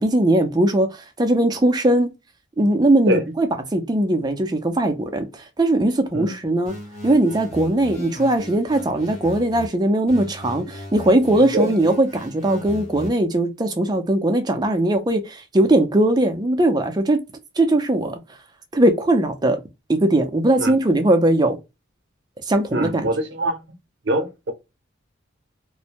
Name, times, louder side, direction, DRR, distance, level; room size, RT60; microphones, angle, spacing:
voice 1, 0.0-2.1 2.6-6.7 7.0-17.2 17.6-18.4 18.7-19.6 19.9-21.6 22.4-23.1, right 1 dB, 20° right, 0.4 m, -19 dB
sound 1, 6.6-9.7 10.1-13.1, equal, 35° left, 1.0 m, -37 dB
voice 2, 22.7-23.6 24.0-24.5, right 1 dB, 60° right, 0.6 m, -23 dB
2.5 x 2.1 x 2.8 m
head